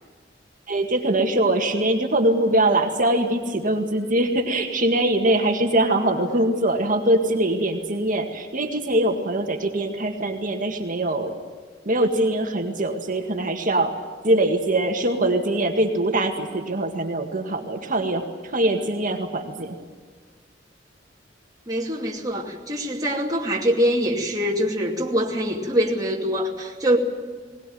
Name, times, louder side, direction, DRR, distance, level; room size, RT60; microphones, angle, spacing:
voice 1, 0.7-11.4 11.9-14.0 14.2-19.8, right 1 dB, 45° right, 4 dB, 2.0 m, -22 dB
voice 2, 21.7-27.0, equal, 20° right, -3 dB, 2.6 m, -24 dB
20.5 x 19.5 x 9.3 m, 1.5 s
head